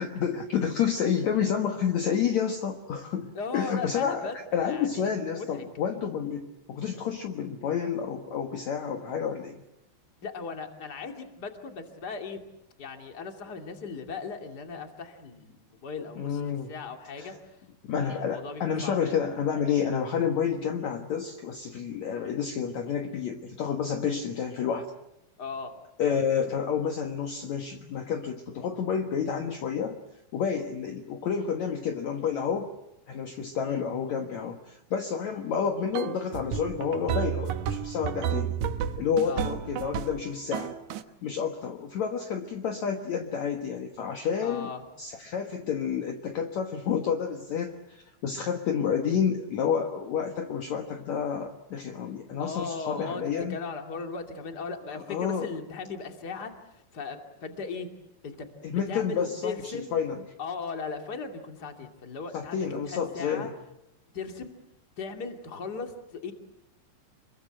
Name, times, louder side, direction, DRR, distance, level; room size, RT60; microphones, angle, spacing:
voice 1, 0.0-9.6 16.2-16.7 17.2-17.4 17.9-24.9 26.0-30.0 30.3-32.7 33.1-38.6 39.0-40.7 41.2-44.7 45.0-53.6 55.1-55.5 58.6-60.2 62.3-63.5, left 7 dB, 60° left, 4 dB, 2.4 m, -29 dB
voice 2, 3.3-5.6 10.2-12.4 12.8-17.6 18.0-19.2 25.4-25.7 33.6-33.8 39.3-39.4 44.4-44.8 52.4-53.2 53.5-57.9 58.2-59.9 60.4-63.5 64.1-64.5 65.0-66.3, left 5 dB, 30° left, 4 dB, 2.7 m, -38 dB
sound 1, 35.9-40.2 40.5-41.0, right 9 dB, 65° right, 2.1 m, -31 dB
27.5 x 22.5 x 7.8 m, 0.87 s
omnidirectional pair, 4.3 m